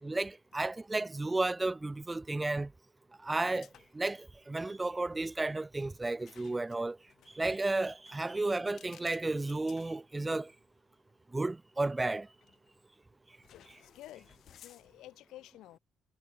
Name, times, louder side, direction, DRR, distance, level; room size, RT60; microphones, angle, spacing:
voice 1, 0.0-2.7 3.2-7.0 7.3-10.5 11.3-12.3, right 2 dB, 20° right, 0.4 m, -33 dB
sound 1, 3.6-4.1 4.4-4.6 6.2-10.6 11.1-11.2 12.4-12.8 13.4-15.2, left 10 dB, 70° left, 2.5 m, -60 dB
voice 2, 13.5-14.3 14.6-15.8, left 15 dB, 90° left, 1.4 m, -52 dB
cardioid pair, 90°, 0 cm